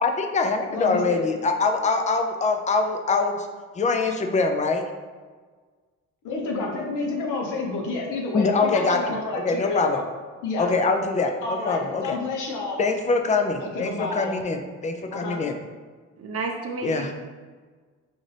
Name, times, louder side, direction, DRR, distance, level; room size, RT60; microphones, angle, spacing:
voice 1, 0.0-3.5 3.7-4.8 8.3-10.0 10.6-12.2 12.8-15.5 16.8-17.1, left 4 dB, 25° left, 5 dB, 0.4 m, -24 dB
voice 2, 0.7-1.3 6.2-10.0 10.4-10.7 11.4-12.8 13.6-14.3 15.1-15.4, left 3 dB, 90° left, -1 dB, 0.8 m, -30 dB
voice 3, 16.2-17.1, right 3 dB, 50° right, 2 dB, 0.7 m, -31 dB
3.9 x 2.5 x 3.2 m, 1.5 s
cardioid pair, 90°, 30 cm